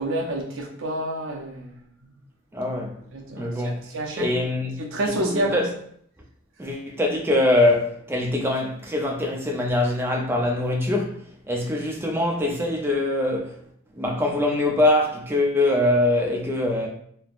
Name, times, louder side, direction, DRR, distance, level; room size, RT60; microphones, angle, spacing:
voice 1, 0.0-1.9 3.1-4.3 4.8-5.6, right 1 dB, 60° right, 0.6 m, -29 dB
voice 2, 2.5-3.0 3.4-3.8 4.2-5.7 6.6-13.6 14.0-16.9, left 1 dB, 10° right, 0.4 m, -23 dB
3.1 x 2.1 x 2.4 m
head